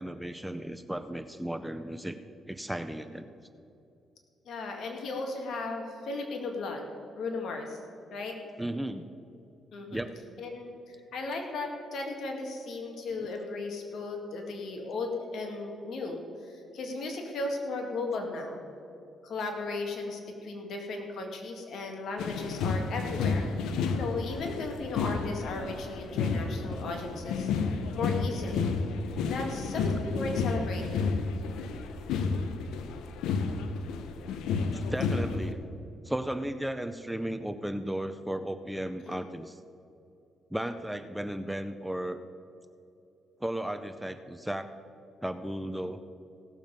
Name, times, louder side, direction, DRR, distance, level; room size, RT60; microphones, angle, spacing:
voice 1, 0.0-2.2 2.5-3.3 8.6-9.1 9.9-10.2 13.2-13.3 26.1-26.2 29.5-29.6 34.7-35.6 36.0-39.6 40.5-42.2 43.4-44.7 45.2-46.0, right 1 dB, 5° right, 10 dB, 0.5 m, -35 dB
voice 2, 4.5-6.8 7.2-7.8 8.1-8.4 9.7-10.1 10.4-18.6 19.2-23.5 23.9-27.5 27.9-28.8 29.3-31.2 39.1-39.2, left 3 dB, 65° left, 3 dB, 1.8 m, -36 dB
sound 1, 22.2-35.5, left 4 dB, 90° left, 0.7 m, -31 dB
17.0 x 7.3 x 5.3 m, 2.7 s
cardioid pair, 90°, 0 cm